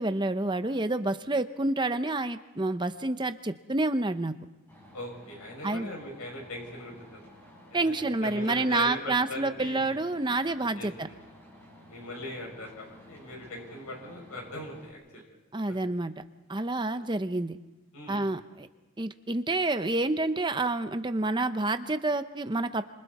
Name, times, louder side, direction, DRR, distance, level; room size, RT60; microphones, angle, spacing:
voice 1, 0.0-4.4 5.6-5.9 7.7-11.1 15.5-16.2 16.5-17.6 18.1-18.7 19.0-22.8, right 2 dB, 20° right, 10 dB, 0.7 m, -28 dB
sound 1, 4.7-14.9, equal, 10° left, 5.0 m, -53 dB
voice 2, 4.9-7.3 7.7-7.8 8.2-9.9 10.7-11.1 11.9-15.3 17.9-18.2, left 1 dB, 90° left, 0 dB, 6.7 m, -40 dB
28.0 x 26.5 x 4.2 m, 1.1 s
head